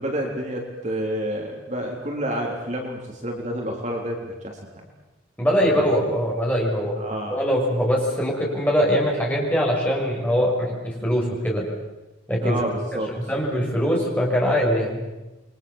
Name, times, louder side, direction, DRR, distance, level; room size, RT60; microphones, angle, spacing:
voice 1, 0.0-4.6 5.6-6.1 6.9-7.4 12.4-13.1, right 1 dB, 35° right, 0 dB, 3.8 m, -29 dB
voice 2, 5.4-7.0 7.3-11.6 12.3-12.6 13.1-15.0, equal, 10° left, -3 dB, 6.8 m, -22 dB
29.0 x 23.5 x 7.4 m, 1.1 s
head